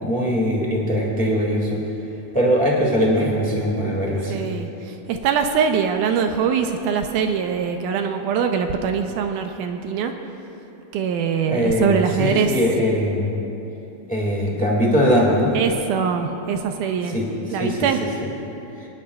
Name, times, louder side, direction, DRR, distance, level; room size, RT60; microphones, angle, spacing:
voice 1, 0.0-1.8 2.3-4.5 11.5-13.3 14.1-15.5 17.1-17.3 17.6-17.8, equal, 10° left, -4 dB, 0.4 m, -21 dB
voice 2, 4.3-10.1 10.9-12.5 15.5-17.2 17.5-18.0, right 7 dB, 80° right, 5 dB, 2.0 m, -23 dB
27.5 x 9.6 x 2.3 m, 2.9 s
omnidirectional pair, 3.8 m